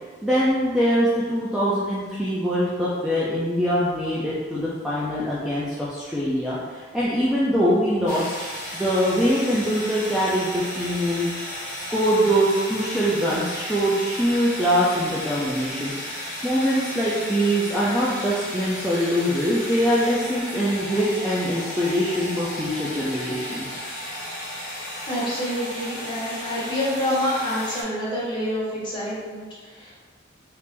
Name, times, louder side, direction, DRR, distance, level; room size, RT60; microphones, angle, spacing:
voice 1, 0.2-8.3 8.7-11.3 11.7-15.9 16.4-23.8, equal, 5° right, -8 dB, 0.4 m, -23 dB
sound 1, 8.1-27.8, equal, 40° left, 0.7 m, -34 dB
voice 2, 25.1-30.0, equal, 25° left, -8 dB, 1.0 m, -27 dB
3.2 x 2.5 x 3.3 m, 1.5 s
head